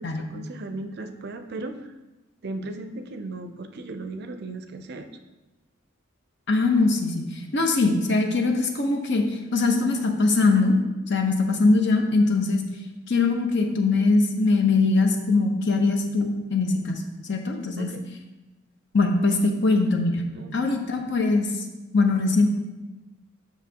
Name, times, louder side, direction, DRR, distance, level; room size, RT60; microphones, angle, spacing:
voice 1, 0.0-1.9 2.4-5.1 17.8-18.1 20.3-20.9, right 2 dB, 50° right, 8 dB, 0.4 m, -36 dB
voice 2, 6.5-10.8 11.1-12.6 13.1-17.9 18.9-20.2 20.5-21.6 21.9-22.5, left 3 dB, 55° left, 4 dB, 0.8 m, -22 dB
7.3 x 6.1 x 2.8 m, 1.1 s
head